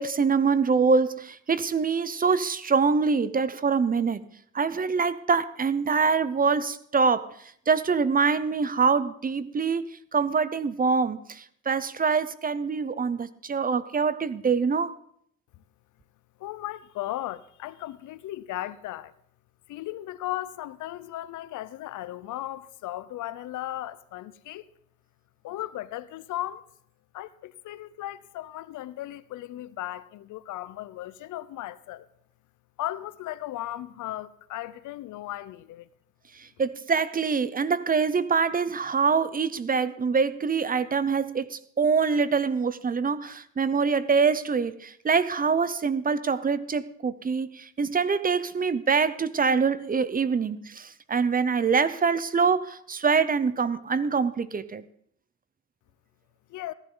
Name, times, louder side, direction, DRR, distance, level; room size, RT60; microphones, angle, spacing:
voice 1, 0.0-4.2 4.5-7.2 7.7-14.9 36.6-54.8, right 5 dB, 30° right, 0.7 m, -25 dB
voice 2, 16.4-19.1 19.7-24.7 25.4-26.6 27.1-32.0 32.8-35.9 56.5-56.7, left 14 dB, 80° left, 0.7 m, -36 dB
15.0 x 11.0 x 3.8 m
cardioid pair, 90°, 30 cm